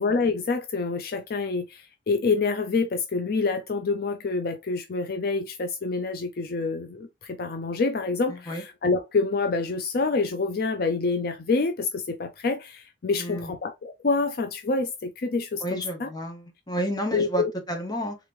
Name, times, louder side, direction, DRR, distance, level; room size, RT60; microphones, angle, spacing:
voice 1, 0.0-16.1 17.1-17.5, left 4 dB, 60° left, 0.5 m, -27 dB
voice 2, 8.3-8.6 13.2-13.5 15.6-18.2, equal, 25° left, 1.1 m, -31 dB
3.7 x 3.1 x 3.4 m
head